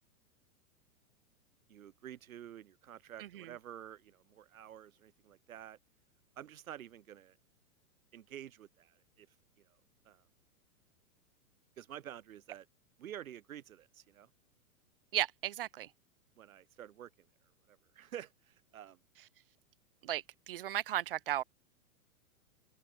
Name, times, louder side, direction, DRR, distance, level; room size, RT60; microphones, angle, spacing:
voice 1, 1.7-5.8 6.4-7.4 8.1-9.3 10.0-10.2 11.8-12.7 13.0-14.3 16.4-17.3 17.7-19.0, right 11 dB, 65° right, 6.7 m, -50 dB
voice 2, 3.2-3.5 15.1-15.9 20.0-21.4, right 13 dB, 40° right, 0.5 m, -35 dB
open air
hypercardioid pair, 165°, 44 cm